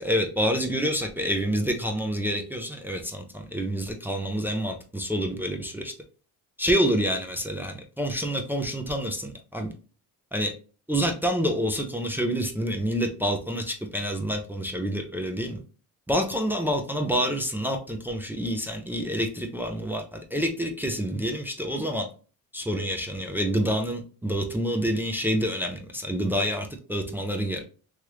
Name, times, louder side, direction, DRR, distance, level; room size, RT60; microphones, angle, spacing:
voice 1, 0.0-5.9 6.6-9.7 10.3-10.5 10.9-15.6 16.1-22.1 22.5-27.6, equal, 5° right, 2 dB, 0.4 m, -27 dB
3.1 x 2.4 x 3.0 m, 0.38 s
cardioid pair, 110°, 37 cm